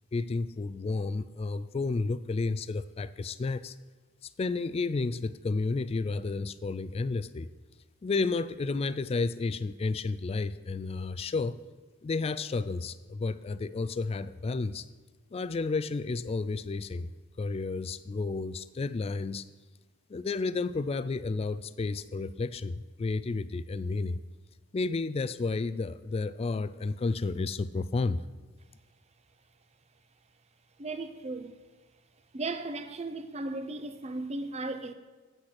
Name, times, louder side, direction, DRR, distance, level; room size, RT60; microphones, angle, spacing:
voice 1, 0.1-3.8 4.2-7.5 8.0-11.6 12.0-14.9 15.3-17.1 17.4-19.5 20.1-24.2 24.7-28.2, left 3 dB, 30° left, 0.3 m, -31 dB
voice 2, 30.8-31.5 32.3-34.9, right 2 dB, 30° right, 0.6 m, -36 dB
8.6 x 8.0 x 6.0 m
head